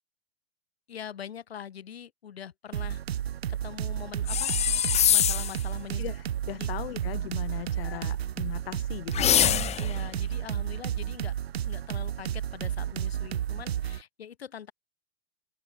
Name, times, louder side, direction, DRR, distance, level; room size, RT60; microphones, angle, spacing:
voice 1, 0.9-3.0 3.5-4.5 5.1-6.0 6.6-6.7 7.7-8.0 9.4-11.3 11.6-14.7, left 9 dB, 90° left, 4.8 m, -43 dB
sound 1, 2.7-14.0, right 10 dB, 85° right, 1.9 m, -32 dB
sound 2, 4.3-5.6 9.1-10.0, left 10 dB, 20° left, 0.8 m, -24 dB
voice 2, 6.0-9.5, left 15 dB, 70° left, 1.7 m, -39 dB
open air
hypercardioid pair, 115°, 30 cm